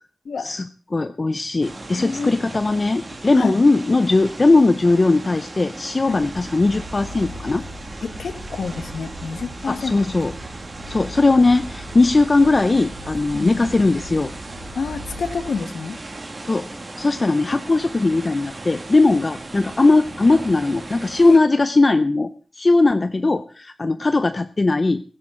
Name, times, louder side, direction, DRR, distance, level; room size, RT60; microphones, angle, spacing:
voice 1, 0.4-7.6 9.7-10.3 10.9-14.3 16.4-16.7 17.0-25.0, left 3 dB, 30° left, 11 dB, 0.6 m, -19 dB
sound 1, 1.6-21.4, right 2 dB, 30° right, 2.2 m, -37 dB
voice 2, 1.9-2.3 3.3-3.6 6.1-6.2 8.0-9.9 13.3-13.7 14.7-16.0 21.3-21.4, left 5 dB, 85° left, 9 dB, 1.4 m, -28 dB
sound 2, 6.1-15.5, equal, 65° right, 4.6 m, -39 dB
16.5 x 15.5 x 3.8 m, 0.40 s
wide cardioid pair, 145°, 0 cm